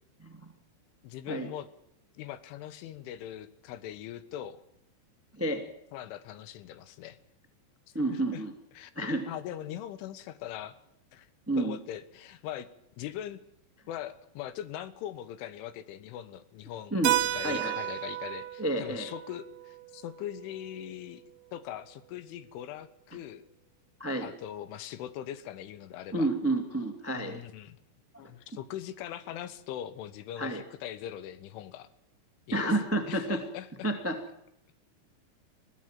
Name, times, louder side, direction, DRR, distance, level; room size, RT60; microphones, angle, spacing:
voice 1, 0.2-0.5 1.3-1.5 5.3-5.6 7.9-8.5 8.9-9.2 11.5-11.8 16.9-17.1 17.4-17.8 18.6-19.1 24.0-24.3 26.1-27.4 30.4-30.6 32.5-33.4 33.8-34.2, right 1 dB, 20° right, 6 dB, 0.3 m, -30 dB
voice 2, 1.0-1.7 2.2-4.6 5.9-7.2 8.1-8.4 8.8-10.8 11.1-11.3 11.6-12.7 13.0-13.4 13.9-17.0 17.3-21.2 21.5-23.5 24.2-26.3 27.2-27.8 28.2-31.9 32.5-33.9, left 11 dB, 80° left, 14 dB, 3.7 m, -41 dB
Keyboard (musical), 17.0-21.5, right 13 dB, 70° right, 3.3 m, -34 dB
22.0 x 16.5 x 7.6 m, 0.78 s
omnidirectional pair, 5.5 m